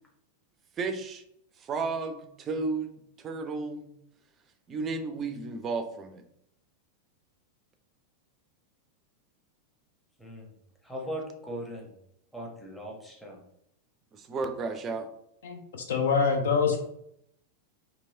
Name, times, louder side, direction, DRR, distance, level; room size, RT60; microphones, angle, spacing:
voice 1, 0.8-1.2 1.6-2.9 3.2-3.9 4.7-6.2 14.1-15.1, right 4 dB, 25° right, 7 dB, 0.4 m, -33 dB
voice 2, 10.8-11.9 12.3-13.4, equal, 5° left, -2 dB, 0.8 m, -39 dB
voice 3, 15.4-16.8, left 5 dB, 60° left, 4 dB, 0.4 m, -25 dB
3.0 x 2.7 x 2.6 m, 0.74 s
figure-of-eight pair, 90°, 0 cm